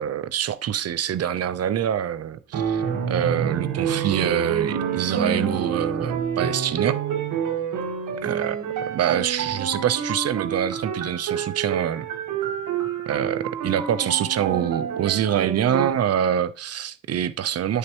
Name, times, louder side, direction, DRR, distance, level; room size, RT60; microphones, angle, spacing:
voice 1, 0.0-7.0 8.2-8.6 8.9-12.1 13.1-17.8, right 10 dB, 55° right, 0.7 m, -25 dB
sound 1, 2.5-15.9, right 7 dB, 80° right, 1.6 m, -28 dB
9.9 x 6.6 x 3.0 m
cardioid pair, 90°, 30 cm